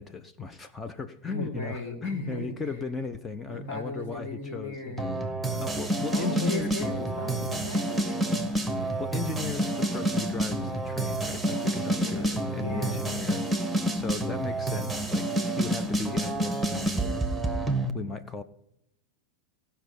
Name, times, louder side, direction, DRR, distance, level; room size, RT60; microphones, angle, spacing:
voice 1, 0.0-5.3 5.6-6.9 9.0-13.5 13.9-17.2 17.9-18.4, left 4 dB, 15° left, 8 dB, 0.7 m, -36 dB
voice 2, 1.3-2.4 3.4-5.2 5.5-5.6 6.1-8.5 11.9-13.1, left 1 dB, 50° left, -1 dB, 5.2 m, -37 dB
sound 1, 5.0-17.9, right 1 dB, 5° right, 1.5 m, -29 dB
17.0 x 5.7 x 8.7 m, 0.78 s
figure-of-eight pair, 90°, 0 cm